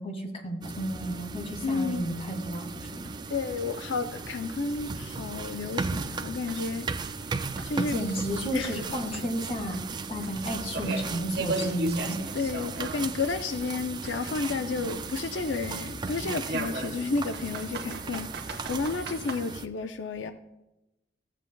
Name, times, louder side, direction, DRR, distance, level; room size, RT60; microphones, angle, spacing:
voice 1, 0.0-3.0 7.9-9.8 10.1-12.2, right 1 dB, 35° left, 1.8 m, -32 dB
sound 1, 0.6-19.7, right 4 dB, 25° right, 0.3 m, -36 dB
voice 2, 1.6-2.1 3.3-7.2 7.6-8.0 8.5-8.8 12.3-20.3, left 4 dB, 85° left, 0.5 m, -31 dB
sound 2, 2.5-2.6 3.0-3.1 3.6-3.7 4.2-4.3 4.7-4.8 5.3-5.4 5.9-8.4 8.6-13.3 13.6-15.6 16.5-19.4, right 2 dB, 60° right, 1.2 m, -38 dB
15.5 x 7.5 x 2.2 m
head